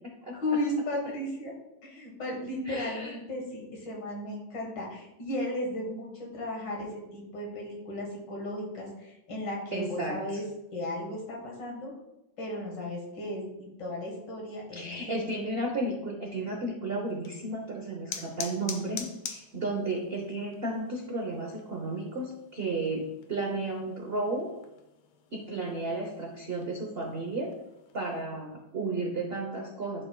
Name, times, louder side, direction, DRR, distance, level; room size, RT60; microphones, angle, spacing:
voice 1, 0.4-1.5 1.8-10.4 10.7-11.9 12.4-15.2, left 1 dB, 60° left, -1 dB, 2.1 m, -35 dB
voice 2, 2.7-3.1 9.7-10.4 14.7-24.5 25.3-27.5 27.9-30.1, right 2 dB, 55° right, 0 dB, 0.6 m, -33 dB
sound 1, 17.1-28.2, left 7 dB, 85° left, 1.6 m, -46 dB
11.0 x 4.5 x 2.2 m, 0.89 s
omnidirectional pair, 2.3 m